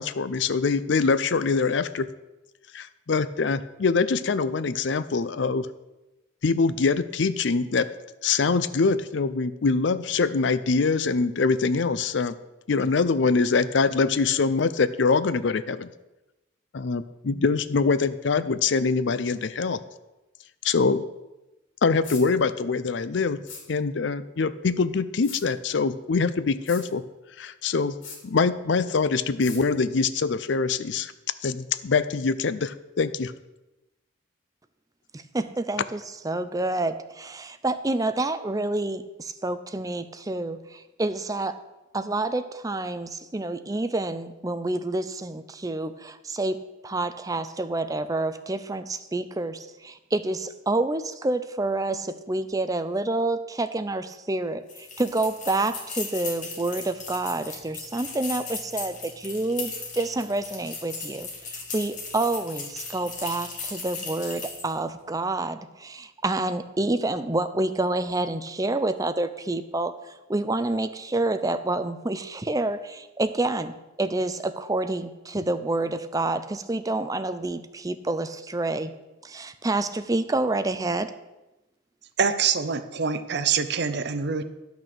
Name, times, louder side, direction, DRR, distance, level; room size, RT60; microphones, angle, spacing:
voice 1, 0.0-2.1 2.7-5.7 6.4-7.9 8.2-12.3 12.7-15.9 16.7-19.8 20.6-21.0 21.8-23.4 23.7-27.0 27.4-28.0 28.2-31.1 31.4-33.3, left 4 dB, 65° left, 14 dB, 0.5 m, -24 dB
sound 1, 22.0-22.2 23.5-23.6 25.2-25.4 26.7-26.8 28.0-28.2 29.4-29.6, left 5 dB, 85° left, 2.7 m, -40 dB
voice 2, 35.1-41.6 41.9-46.6 46.8-78.9 79.2-81.1, right 2 dB, 20° right, 10 dB, 0.5 m, -28 dB
sound 2, 54.7-64.8, left 4 dB, 40° left, 2.4 m, -37 dB
voice 3, 82.2-84.4, right 6 dB, 60° right, 11 dB, 0.7 m, -25 dB
11.0 x 6.1 x 6.8 m, 1.0 s
head